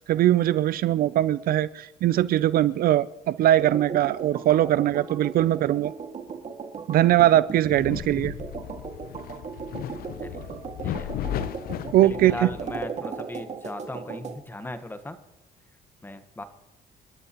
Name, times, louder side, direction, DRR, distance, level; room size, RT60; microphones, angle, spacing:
voice 1, 0.1-5.9 6.9-8.3 11.9-12.5, right 13 dB, 60° right, 17 dB, 0.5 m, -21 dB
sound 1, 3.6-14.4, right 5 dB, 45° right, 2.1 m, -37 dB
sound 2, 7.7-12.9, left 11 dB, 60° left, 0.6 m, -35 dB
voice 2, 12.0-15.2 16.0-16.4, left 1 dB, 10° left, 8 dB, 1.3 m, -37 dB
28.0 x 12.5 x 3.0 m, 0.99 s
cardioid pair, 110°, 17 cm